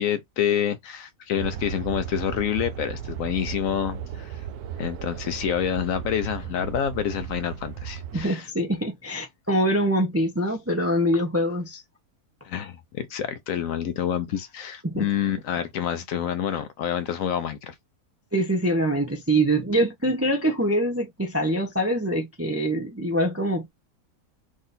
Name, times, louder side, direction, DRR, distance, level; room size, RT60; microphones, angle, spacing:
voice 1, 0.0-4.4 4.8-8.5 12.4-17.7, left 9 dB, 70° left, 0.9 m, -28 dB
sound 1, 1.3-8.3, right 9 dB, 85° right, 1.1 m, -35 dB
voice 2, 8.1-11.8 14.8-15.1 18.3-23.7, right 1 dB, 15° right, 0.4 m, -24 dB
3.7 x 2.6 x 4.1 m
omnidirectional pair, 1.6 m